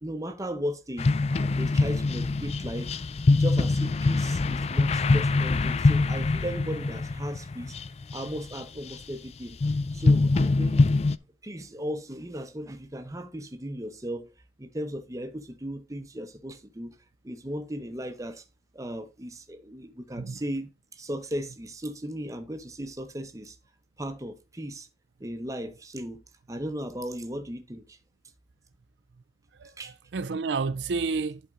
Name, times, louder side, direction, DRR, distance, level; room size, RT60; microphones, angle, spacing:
voice 1, 0.0-2.9 3.3-7.8 8.1-9.6 9.9-10.9 11.4-14.3 14.6-16.9 17.2-18.4 18.7-23.6 24.0-24.9 25.2-26.2 26.5-28.0 29.8-29.9, equal, 20° right, 0.8 m, -36 dB
sound 1, 1.0-8.9 9.6-11.2, left 3 dB, 35° left, 0.3 m, -24 dB
voice 2, 29.6-31.4, right 4 dB, 75° right, 0.4 m, -30 dB
11.0 x 4.3 x 3.7 m
head